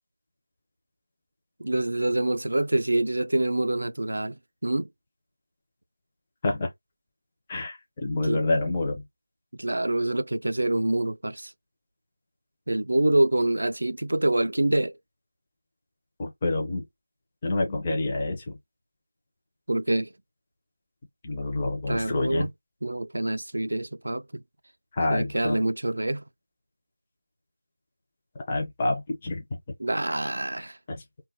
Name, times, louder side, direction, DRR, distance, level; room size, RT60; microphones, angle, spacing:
voice 1, 1.6-4.9 8.2-8.4 9.5-11.5 12.7-15.0 19.7-20.1 21.9-22.5 22.8-24.4 25.1-26.2 29.8-30.8, right 1 dB, 75° right, 0.3 m, -26 dB
voice 2, 7.5-9.0 16.2-16.8 17.4-18.6 21.2-22.5 24.9-25.6 28.4-29.4 30.9-31.0, left 2 dB, 15° left, 0.4 m, -27 dB
2.2 x 2.0 x 3.4 m
figure-of-eight pair, 175°, 0 cm